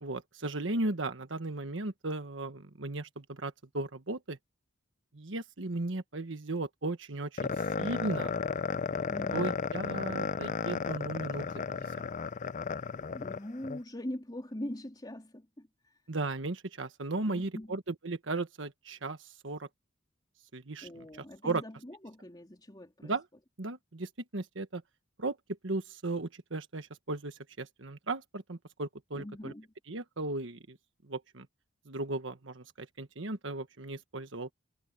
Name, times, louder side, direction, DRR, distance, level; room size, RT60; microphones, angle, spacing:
voice 1, 0.0-4.4 5.1-8.3 9.3-12.0 16.1-19.7 20.5-20.9 21.4-21.6 23.0-23.2 23.6-24.8 25.2-25.4 25.6-29.5 29.9-30.8 31.0-31.5 31.8-34.5, right 2 dB, 75° right, 1.4 m, -36 dB
sound 1, 7.4-13.8, left 5 dB, 40° left, 0.5 m, -34 dB
voice 2, 9.1-9.5 13.1-16.0 17.3-17.8 20.8-23.1 29.1-29.7, left 1 dB, 20° left, 3.5 m, -42 dB
head